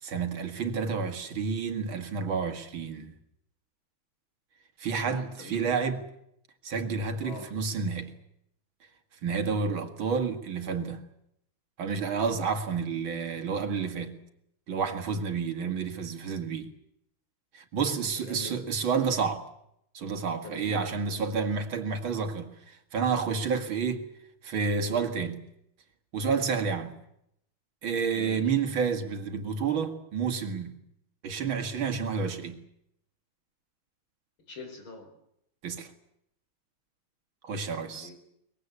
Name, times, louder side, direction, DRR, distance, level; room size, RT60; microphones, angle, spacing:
voice 1, 0.0-3.1 4.8-6.0 6.6-8.2 9.2-11.1 11.8-14.2 14.7-16.7 17.5-19.5 19.9-24.1 24.4-25.5 26.1-27.0 27.8-30.8 31.2-32.6 35.6-35.9 37.4-38.1, right 5 dB, 75° right, 2.8 m, -30 dB
voice 2, 5.1-5.7 7.2-7.5 18.1-18.6 20.4-21.2 28.1-28.6 34.5-35.1 37.9-38.1, left 2 dB, 80° left, 5.3 m, -44 dB
23.5 x 21.5 x 8.4 m
omnidirectional pair, 2.2 m